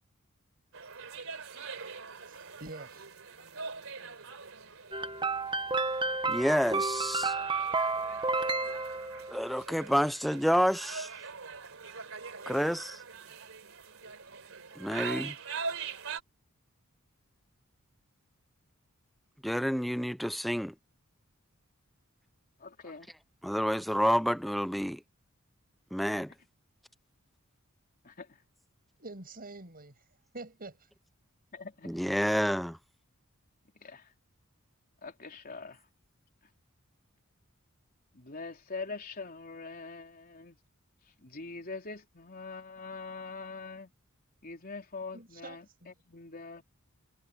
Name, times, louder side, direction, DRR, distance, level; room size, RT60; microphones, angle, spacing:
sound 1, 0.7-16.2, right 5 dB, 70° right, 3.7 m, -43 dB
voice 1, 2.3-3.1 29.0-29.9 30.3-30.9 45.1-45.9, right 2 dB, 45° right, 7.0 m, -46 dB
sound 2, 4.9-9.5, right 3 dB, 20° right, 1.1 m, -31 dB
voice 2, 6.3-7.3 9.3-11.1 12.5-13.0 14.8-15.3 19.4-20.7 23.4-25.0 25.9-26.3 31.8-32.8, equal, ahead, 0.6 m, -29 dB
voice 3, 22.6-23.1 28.0-28.4 31.5-31.9 33.8-34.1 35.0-35.8 38.1-40.6 41.2-43.9 44.4-46.6, left 4 dB, 45° left, 3.7 m, -43 dB
head